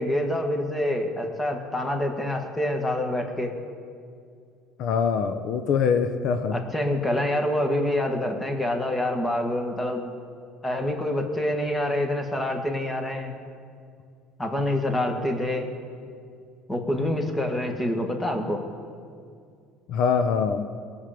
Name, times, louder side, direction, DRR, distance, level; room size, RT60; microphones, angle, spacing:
voice 1, 0.0-3.5 6.5-10.1 10.6-13.3 14.4-15.7 16.7-18.6, left 1 dB, 15° left, 4 dB, 1.8 m, -26 dB
voice 2, 4.8-6.5 19.9-20.6, left 6 dB, 65° left, 8 dB, 0.7 m, -23 dB
19.0 x 7.3 x 5.2 m, 2.3 s
supercardioid pair, 100°, 0 cm